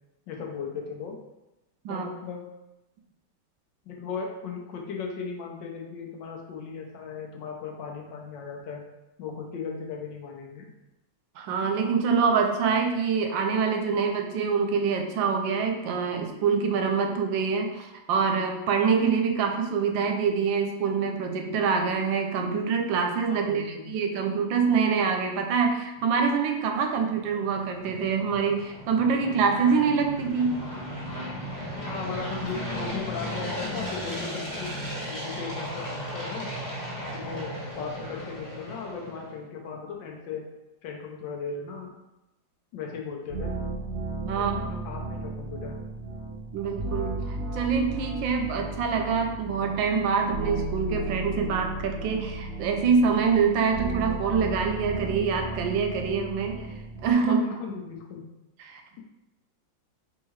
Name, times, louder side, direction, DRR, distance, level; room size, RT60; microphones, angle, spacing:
voice 1, 0.3-1.2 1.9-2.4 3.9-8.8 9.2-10.7 23.3-23.9 31.8-34.7 35.0-36.5 37.1-40.4 40.8-41.9 42.7-43.5 44.4-45.8 57.3-58.2, left 5 dB, 75° left, 1 dB, 1.3 m, -37 dB
voice 2, 11.4-30.6 44.2-44.5 46.5-56.7 57.0-57.4 58.6-58.8, right 5 dB, 80° right, 4 dB, 1.3 m, -25 dB
sound 1, 27.0-39.3, equal, 10° left, 1.1 m, -36 dB
sound 2, 43.3-57.1, right 2 dB, 35° right, 1.2 m, -34 dB
4.5 x 3.6 x 3.1 m, 0.96 s
omnidirectional pair, 2.1 m